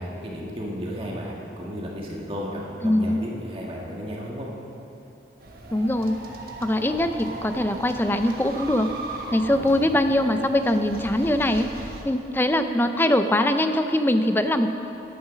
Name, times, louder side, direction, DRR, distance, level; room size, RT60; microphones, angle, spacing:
voice 1, 0.0-4.5 6.9-7.4 9.4-10.0, equal, 30° right, -3 dB, 1.6 m, -34 dB
voice 2, 2.8-3.2 5.7-6.2 6.6-8.9 9.3-11.7 12.0-14.7, left 1 dB, 10° left, 8 dB, 0.5 m, -22 dB
sound 1, 5.4-12.0, right 2 dB, 55° right, 1.4 m, -38 dB
11.0 x 10.5 x 6.2 m, 2.9 s
head